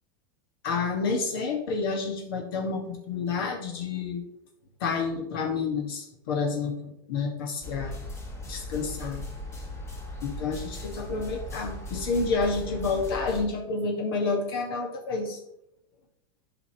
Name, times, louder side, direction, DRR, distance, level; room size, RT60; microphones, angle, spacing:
voice 1, 0.6-4.2 4.8-7.9 8.5-9.2 10.2-15.4, left 4 dB, 70° left, 2 dB, 1.4 m, -29 dB
sound 1, 7.6-13.4, left 2 dB, 20° left, 1.5 m, -38 dB
8.3 x 5.1 x 2.9 m, 0.75 s
supercardioid pair, 120°, 12 cm